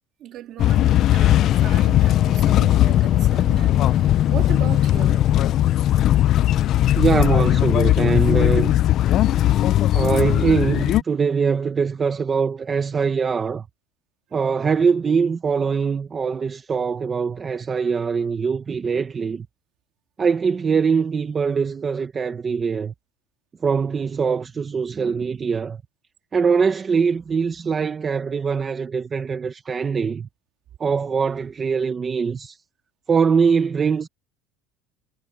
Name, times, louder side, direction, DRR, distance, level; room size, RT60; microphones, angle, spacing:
voice 1, 0.2-5.3, right 12 dB, 40° right, 2.3 m, -37 dB
sound 1, 0.6-11.0, left 13 dB, 40° left, 0.5 m, -18 dB
voice 2, 6.9-8.8 9.9-13.6 14.3-19.5 20.2-22.9 23.6-25.8 26.3-30.3 30.8-32.6 33.1-34.1, right 5 dB, 20° right, 1.0 m, -22 dB
cardioid pair, 170°, 0 cm